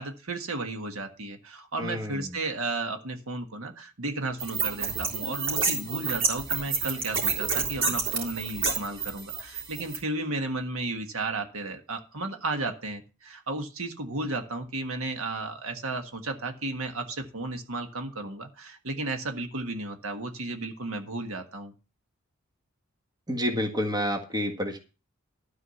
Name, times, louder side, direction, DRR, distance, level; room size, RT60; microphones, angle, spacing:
voice 1, 0.0-21.7, right 2 dB, 75° right, 4 dB, 1.6 m, -34 dB
voice 2, 1.8-2.4 23.3-24.8, equal, 20° right, 3 dB, 1.6 m, -29 dB
sound 1, 4.4-10.0, right 5 dB, 60° right, 3.6 m, -29 dB
12.5 x 4.9 x 7.0 m, 0.32 s
head